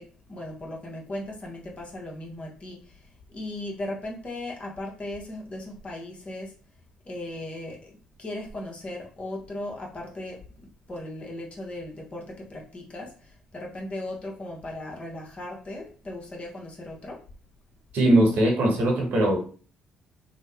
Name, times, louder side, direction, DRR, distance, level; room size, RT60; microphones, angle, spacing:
voice 1, 0.0-6.5 7.0-10.5 10.9-17.2, left 1 dB, 35° left, -1 dB, 1.1 m, -37 dB
voice 2, 17.9-19.4, right 1 dB, 60° right, 0 dB, 1.1 m, -20 dB
3.0 x 2.1 x 3.3 m, 0.39 s
figure-of-eight pair, 45°, 3 cm